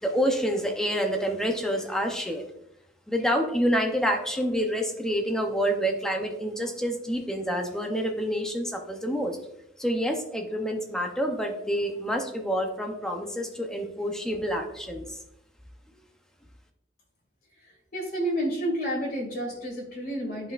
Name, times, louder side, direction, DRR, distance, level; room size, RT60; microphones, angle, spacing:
voice 1, 0.0-2.4 3.1-9.4 9.8-15.2, equal, 5° left, 2 dB, 0.7 m, -28 dB
voice 2, 17.9-20.5, equal, 50° left, -1 dB, 2.2 m, -30 dB
11.5 x 4.1 x 2.5 m, 0.84 s
head